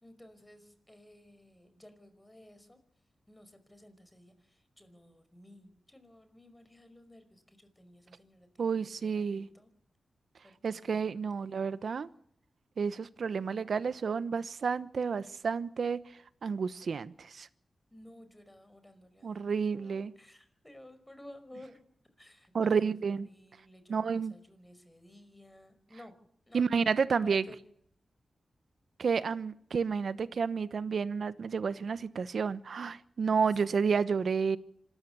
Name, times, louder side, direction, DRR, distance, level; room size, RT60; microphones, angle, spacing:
voice 1, 0.0-2.8 3.3-9.7 10.7-11.7 17.9-21.8 22.2-26.1 26.5-26.9 27.2-27.6 29.1-29.3 33.5-33.8, left 1 dB, 10° left, 5.1 m, -55 dB
voice 2, 8.6-9.5 10.6-12.1 12.8-16.0 16.4-17.5 19.2-20.1 22.5-23.3 23.9-24.3 26.5-27.4 29.0-34.6, right 5 dB, 70° right, 1.0 m, -30 dB
26.0 x 14.5 x 7.0 m
cardioid pair, 65°, 0 cm